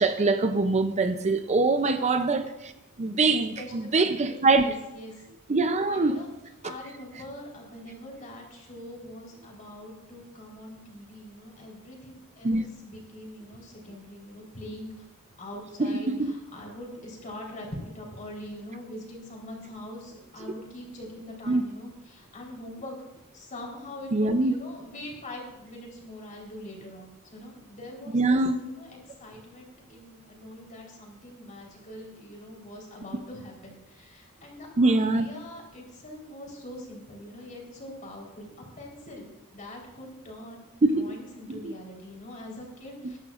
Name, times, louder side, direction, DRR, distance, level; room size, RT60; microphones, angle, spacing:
voice 1, 0.0-2.7 3.0-4.7 5.5-6.2 12.4-12.6 15.8-16.3 21.5-21.6 24.1-24.5 28.1-28.6 34.8-35.3 40.8-41.1 41.5-41.8, right 3 dB, 30° right, 9 dB, 0.5 m, -23 dB
voice 2, 1.9-2.3 3.3-5.2 5.9-6.3 6.6-15.1 15.4-22.9 23.3-40.6 40.9-43.2, left 1 dB, 35° left, -1 dB, 4.0 m, -43 dB
21.0 x 11.0 x 2.5 m, 0.99 s
head